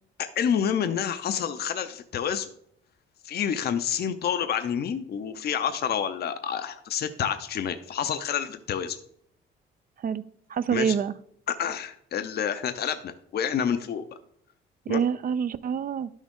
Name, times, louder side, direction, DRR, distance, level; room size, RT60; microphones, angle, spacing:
voice 1, 0.2-2.5 3.2-9.0 10.7-10.9 11.5-14.0 14.9-15.0, left 8 dB, 55° left, 10 dB, 0.6 m, -28 dB
voice 2, 10.5-11.1 14.9-16.1, right 7 dB, 45° right, 14 dB, 0.4 m, -26 dB
11.0 x 6.3 x 3.7 m, 0.70 s
cardioid pair, 90°, 20 cm